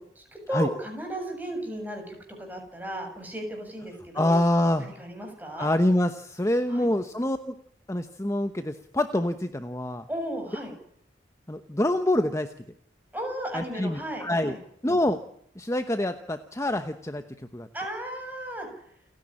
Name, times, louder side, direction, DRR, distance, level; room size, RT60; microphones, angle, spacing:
voice 1, 0.0-4.4 4.8-5.7 6.7-6.9 10.1-10.7 13.1-14.6 17.7-18.7, right 1 dB, 10° right, 3 dB, 7.3 m, -35 dB
voice 2, 4.1-4.9 5.6-7.5 7.9-10.0 11.5-12.5 13.5-14.5 14.8-15.2 15.5-17.7, left 1 dB, 15° left, 9 dB, 1.0 m, -26 dB
29.5 x 10.5 x 10.0 m, 0.71 s
head